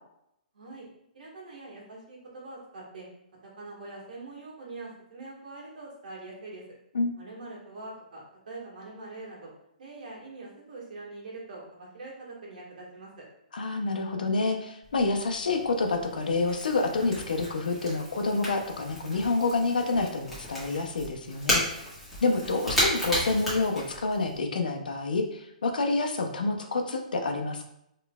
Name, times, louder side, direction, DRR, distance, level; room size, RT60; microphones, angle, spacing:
voice 1, 0.5-0.9 1.1-3.1 3.5-6.6 7.2-9.5 9.8-13.2, right 2 dB, 70° right, -3 dB, 1.5 m, -43 dB
voice 2, 13.5-21.6 22.2-27.7, left 3 dB, 85° left, 4 dB, 0.6 m, -28 dB
Crackle / Crack, 14.8-24.4, equal, ahead, 1.4 m, -34 dB
3.9 x 3.1 x 2.3 m, 0.79 s
hypercardioid pair, 145°, 5 cm